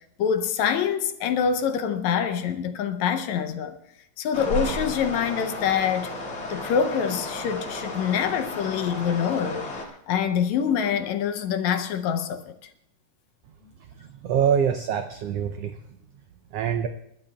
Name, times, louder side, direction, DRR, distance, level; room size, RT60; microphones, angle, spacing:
voice 1, 0.2-3.8 4.2-6.1 6.5-9.6 10.1-12.6, left 7 dB, 75° left, 1.9 m, -25 dB
sound 1, 4.3-9.9, left 1 dB, 45° left, 2.8 m, -33 dB
voice 2, 14.0-15.8 16.5-16.9, right 8 dB, 85° right, 1.3 m, -25 dB
28.5 x 12.5 x 2.3 m
omnidirectional pair, 3.5 m